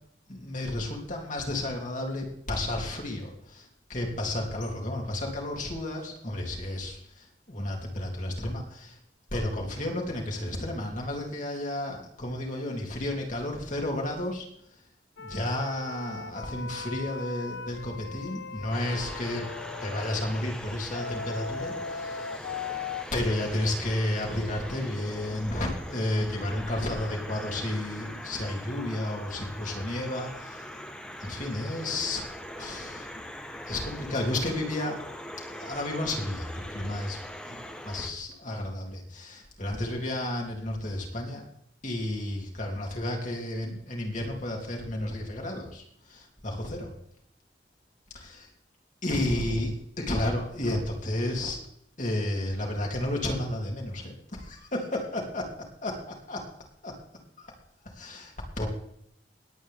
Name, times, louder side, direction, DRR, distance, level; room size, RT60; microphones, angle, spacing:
voice 1, 0.3-8.9 9.3-14.5 15.2-19.5 19.8-22.4 23.1-30.7 31.2-32.2 32.6-33.1 33.7-35.0 35.5-37.2 37.5-37.6 37.8-41.4 41.8-46.9 48.1-48.5 49.0-51.6 52.0-55.5 55.8-56.4 56.8-56.9 57.4-57.5 58.0-58.7, left 1 dB, 45° left, 0 dB, 3.3 m, -32 dB
sound 1, 15.2-20.2 20.9-23.0, left 5 dB, 80° left, 0.6 m, -38 dB
sound 2, 18.7-38.1, equal, 5° left, 1.5 m, -41 dB
21.0 x 8.9 x 3.7 m, 0.71 s
head